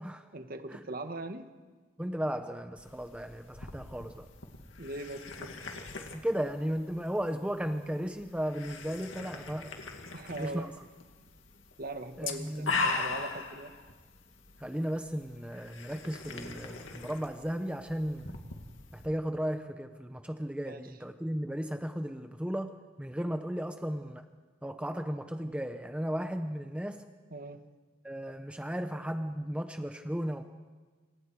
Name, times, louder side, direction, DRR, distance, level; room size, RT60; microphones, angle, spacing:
voice 1, 0.3-1.5 4.8-5.5 10.1-10.7 11.8-13.7 20.7-20.8 27.3-27.6, right 2 dB, 50° right, 7 dB, 1.6 m, -40 dB
voice 2, 2.0-4.3 6.1-9.7 10.4-10.7 12.2-12.7 14.6-18.4 18.9-24.2 24.6-27.0 28.0-30.4, equal, 5° right, 7 dB, 0.8 m, -35 dB
sound 1, 2.8-19.1, left 4 dB, 75° left, 2.3 m, -40 dB
27.5 x 26.5 x 4.8 m, 1.4 s
head